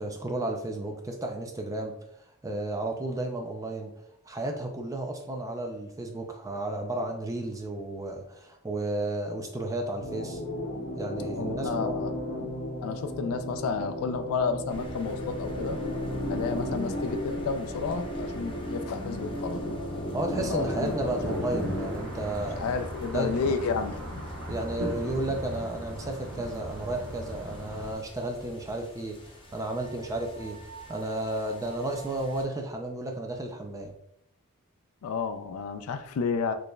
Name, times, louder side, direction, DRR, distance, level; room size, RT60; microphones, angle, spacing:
voice 1, 0.0-3.9 4.2-10.4 10.9-12.0 20.1-22.6 23.1-23.6 24.5-30.6 30.9-33.9, right 2 dB, 15° right, 3 dB, 0.3 m, -33 dB
sound 1, 10.0-21.9, left 1 dB, 45° left, 1.3 m, -34 dB
voice 2, 11.4-12.1 12.8-15.8 16.3-19.8 20.5-21.4 22.6-24.2 35.0-36.5, left 5 dB, 70° left, 7 dB, 0.3 m, -31 dB
sound 2, 14.7-32.4, equal, 25° left, 0.6 m, -43 dB
sound 3, 20.3-27.9, equal, 65° right, 1.0 m, -38 dB
4.2 x 3.2 x 2.2 m, 0.74 s
head